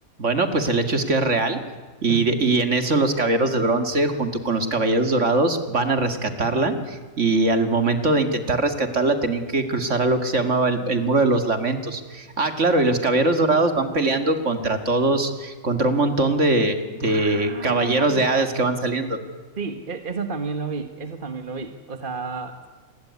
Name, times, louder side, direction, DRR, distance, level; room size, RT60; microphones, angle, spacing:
voice 1, 0.2-1.6 2.0-19.2, right 2 dB, 55° right, 8 dB, 2.5 m, -21 dB
voice 2, 17.0-18.2 19.6-22.7, right 5 dB, 35° right, 8 dB, 1.6 m, -31 dB
28.0 x 21.0 x 9.7 m, 1.3 s
omnidirectional pair, 1.5 m